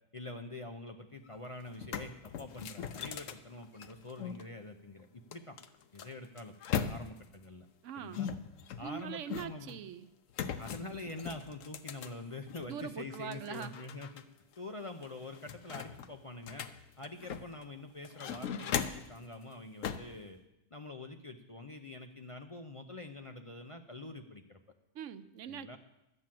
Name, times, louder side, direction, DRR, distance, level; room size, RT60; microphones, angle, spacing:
voice 1, 0.1-5.6 5.9-6.5 6.9-7.7 8.0-8.3 8.8-9.8 10.6-14.2 14.6-16.7 17.0-20.4 20.7-24.6 25.4-25.8, left 2 dB, 35° left, 4 dB, 0.5 m, -45 dB
sound 1, 1.3-1.4 1.7-4.4 5.3-7.3 8.1-9.7 10.3-12.7 13.1-14.2 14.5-14.6 15.0-17.6 18.0-19.2 19.8-20.2, left 8 dB, 80° left, 1.1 m, -39 dB
voice 2, 7.8-8.3 8.8-10.1 12.7-13.7 24.9-25.8, right 8 dB, 75° right, 13 dB, 1.0 m, -42 dB
12.0 x 8.5 x 7.6 m, 0.89 s
omnidirectional pair, 1.3 m